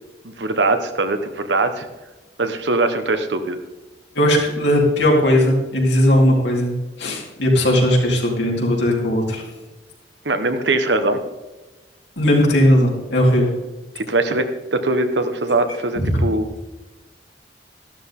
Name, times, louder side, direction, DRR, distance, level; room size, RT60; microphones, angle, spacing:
voice 1, 0.2-1.9 2.4-3.6 10.2-11.2 13.9-16.5, right 2 dB, 75° right, 8 dB, 1.3 m, -21 dB
voice 2, 4.2-9.4 12.2-13.5 16.0-16.2, equal, 75° left, -2 dB, 3.8 m, -17 dB
13.5 x 12.0 x 3.9 m, 1.1 s
head